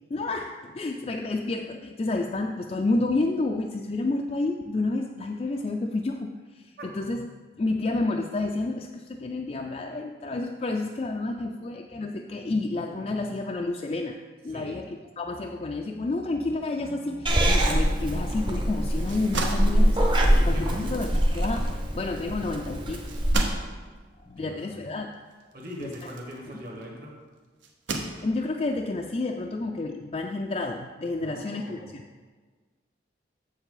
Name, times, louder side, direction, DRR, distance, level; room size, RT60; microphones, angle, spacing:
voice 1, 0.1-7.3 7.6-14.2 14.4-14.8 15.2-23.0 24.2-25.1 25.8-25.9 27.9-32.1, left 2 dB, 35° left, 2 dB, 0.3 m, -30 dB
voice 2, 14.5-14.8 20.3-21.1 24.4-24.9 25.5-27.1 31.2-32.0, equal, 50° right, -1 dB, 1.5 m, -40 dB
Purr / Meow, 17.3-23.3, equal, 25° right, 0.7 m, -24 dB
sound 1, 19.0-27.0 27.6-28.7, right 3 dB, 85° right, 0.9 m, -37 dB
7.5 x 7.1 x 3.8 m, 1.4 s
head